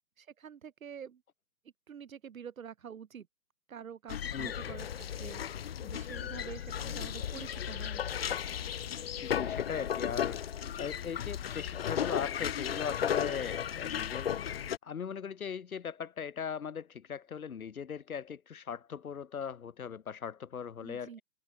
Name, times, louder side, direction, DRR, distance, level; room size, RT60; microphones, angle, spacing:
voice 1, 0.2-1.2 1.9-3.3 3.7-4.9 5.2-8.0 20.8-21.2, right 7 dB, 55° right, 2.5 m, -47 dB
sound 1, 4.1-14.8, left 9 dB, 35° left, 0.9 m, -35 dB
voice 2, 4.3-4.7 9.2-10.4 10.8-14.3 14.8-21.2, left 7 dB, 55° left, 3.2 m, -39 dB
figure-of-eight pair, 140°, 50 cm